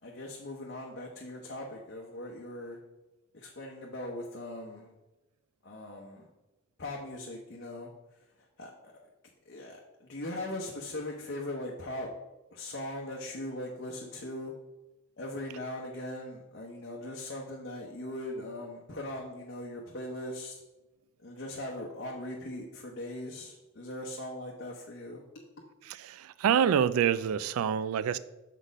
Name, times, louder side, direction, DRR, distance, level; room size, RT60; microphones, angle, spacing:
voice 1, 0.0-2.8 3.3-4.9 5.6-6.3 6.8-8.9 9.4-12.1 12.5-14.5 15.2-20.5 21.2-25.2, left 1 dB, 50° left, 0.8 m, -40 dB
voice 2, 25.9-28.2, right 8 dB, 90° right, 0.3 m, -27 dB
6.4 x 4.1 x 5.1 m
head